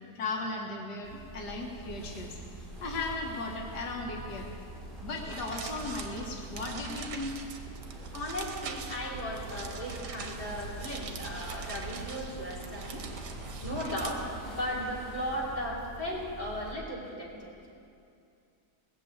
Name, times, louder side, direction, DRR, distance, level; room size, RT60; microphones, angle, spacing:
voice 1, 0.1-2.4 2.8-4.5 5.0-7.3, left 3 dB, 85° left, 0 dB, 1.8 m, -36 dB
sound 1, 1.0-16.7, right 2 dB, 35° right, 3.7 m, -44 dB
sound 2, 5.1-14.1, right 6 dB, 85° right, 1.6 m, -43 dB
voice 2, 8.1-13.0 13.6-17.5, equal, 25° left, -6 dB, 3.3 m, -36 dB
18.5 x 6.9 x 8.5 m, 2.5 s
omnidirectional pair, 1.7 m